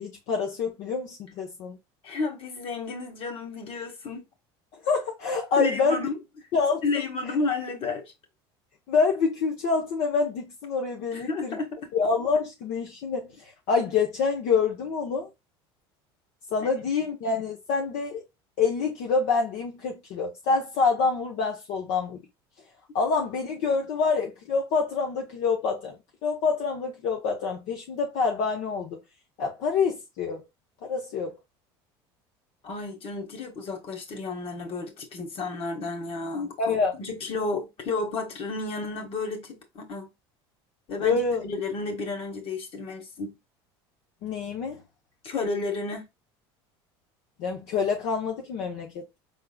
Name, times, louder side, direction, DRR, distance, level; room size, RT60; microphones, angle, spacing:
voice 1, 0.0-1.8 4.8-6.1 6.5-7.1 8.9-11.6 11.9-15.3 16.5-18.2 18.6-22.2 22.9-25.9 26.2-29.0 29.4-30.4 30.8-31.4 36.6-36.9 41.0-41.4 44.2-44.8 47.4-49.2, left 4 dB, 70° left, 0.9 m, -26 dB
voice 2, 2.0-4.2 5.6-6.2 6.8-8.0 11.1-11.9 32.6-40.1 40.9-43.4 45.2-46.1, left 3 dB, 50° left, 1.7 m, -32 dB
4.8 x 3.7 x 2.3 m
supercardioid pair, 90°, 13 cm